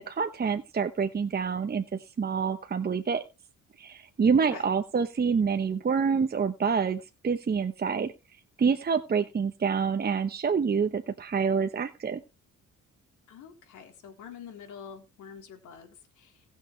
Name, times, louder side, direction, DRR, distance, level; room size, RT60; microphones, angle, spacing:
voice 1, 0.0-3.2 3.8-8.1 8.6-12.2, right 6 dB, 30° right, 7 dB, 1.0 m, -27 dB
voice 2, 13.3-16.4, left 7 dB, 85° left, 3 dB, 3.5 m, -46 dB
19.0 x 6.7 x 3.4 m, 0.28 s
cardioid pair, 90°, 30 cm